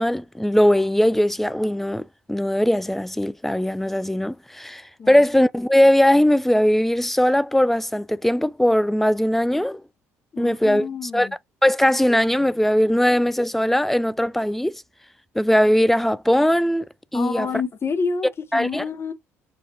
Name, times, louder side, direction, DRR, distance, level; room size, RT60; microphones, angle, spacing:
voice 1, 0.0-9.8 10.4-10.9 11.1-11.3 11.6-14.8 15.4-16.9 17.1-17.5 18.5-18.8, equal, 5° left, 0.3 m, -19 dB
voice 2, 10.3-11.3 17.1-19.1, left 5 dB, 35° left, 0.8 m, -28 dB
6.1 x 2.4 x 2.6 m
figure-of-eight pair, 50°, 8 cm